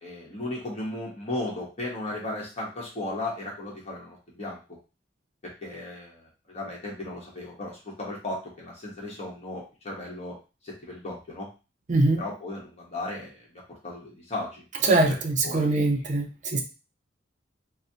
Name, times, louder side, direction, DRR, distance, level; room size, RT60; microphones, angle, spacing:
voice 1, 0.0-4.6 5.4-10.4 10.6-11.5 12.2-13.3 13.8-14.6 15.4-16.0, left 2 dB, 35° left, -2 dB, 1.0 m, -36 dB
voice 2, 11.9-12.2 14.8-16.6, right 2 dB, 40° right, 3 dB, 0.5 m, -23 dB
3.9 x 2.1 x 2.7 m, 0.31 s
head